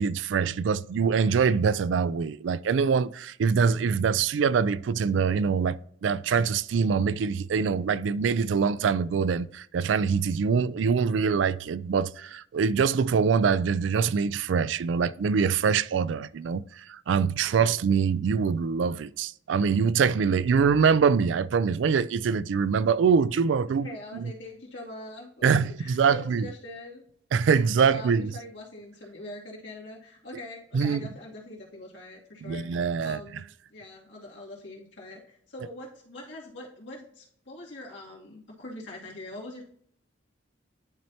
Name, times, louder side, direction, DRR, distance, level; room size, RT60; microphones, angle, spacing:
voice 1, 0.0-23.9 24.1-24.3 25.4-26.5 27.3-28.3 30.7-31.1 32.4-33.2, right 6 dB, 80° right, 0.3 m, -24 dB
voice 2, 23.8-27.0 27.8-39.6, left 1 dB, 70° left, 2.4 m, -43 dB
10.5 x 4.4 x 2.8 m
head